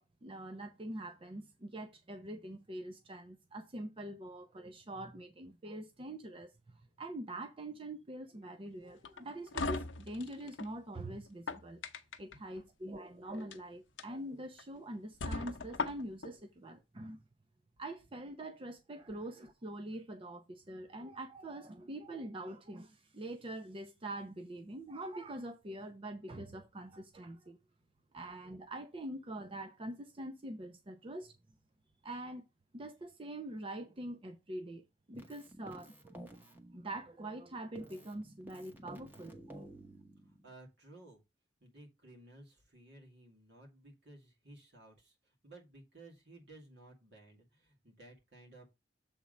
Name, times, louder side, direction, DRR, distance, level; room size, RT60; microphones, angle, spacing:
voice 1, 0.0-11.8 12.2-17.2 17.8-27.6 28.1-31.3 32.0-32.4 32.7-39.7, right 1 dB, 30° right, 0.6 m, -44 dB
sound 1, 9.0-10.7 11.3-12.4 13.3-13.6 14.0-14.1 14.6-14.7 15.2-16.3, left 3 dB, 80° left, 0.7 m, -39 dB
Keyboard (musical), 35.1-37.4 37.8-40.5, right 1 dB, 10° right, 1.1 m, -53 dB
voice 2, 40.2-41.2 41.6-48.7, right 2 dB, 65° right, 2.3 m, -56 dB
7.2 x 3.6 x 5.2 m
head